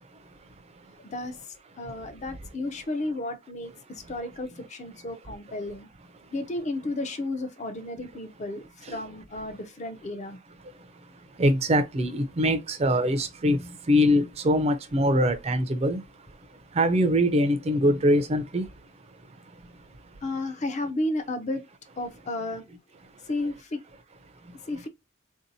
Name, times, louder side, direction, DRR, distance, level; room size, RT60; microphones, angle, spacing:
voice 1, 1.0-5.9 6.3-10.4 20.2-21.6 22.0-22.7 23.2-23.8 24.7-24.9, left 2 dB, 35° left, 0.5 m, -33 dB
voice 2, 10.8-16.0 16.5-18.7 19.5-19.7 24.4-24.6, equal, 30° right, 0.4 m, -24 dB
3.6 x 2.7 x 2.6 m
head